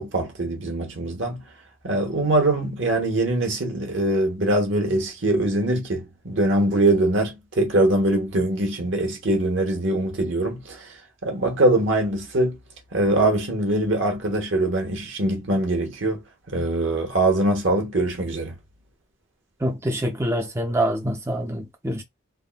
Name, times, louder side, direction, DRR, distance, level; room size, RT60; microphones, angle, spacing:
voice 1, 0.0-1.4 1.8-11.0 11.2-12.6 12.9-18.6, right 1 dB, 65° right, 1.0 m, -23 dB
voice 2, 19.6-22.0, right 1 dB, 15° right, 0.5 m, -25 dB
3.4 x 2.1 x 2.2 m
head